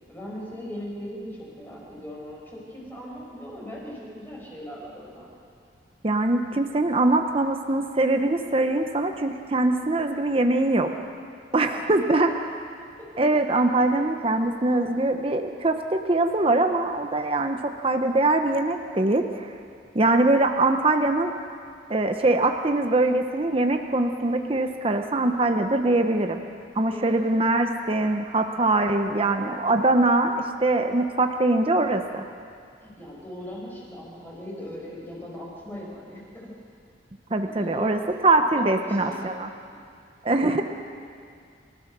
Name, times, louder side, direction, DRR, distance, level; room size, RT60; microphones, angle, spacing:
voice 1, 0.1-5.3 11.6-12.0 12.2-12.3 13.0-13.1 26.9-27.4 28.8-29.3 32.8-36.5 37.4-39.2, equal, 10° left, -4 dB, 6.0 m, -39 dB
voice 2, 6.0-10.9 11.5-12.3 13.2-19.5 19.9-21.3 21.9-26.4 26.7-32.2 37.3-39.5 40.2-40.6, right 2 dB, 30° right, 5 dB, 0.9 m, -22 dB
29.5 x 14.5 x 6.8 m, 2.3 s
head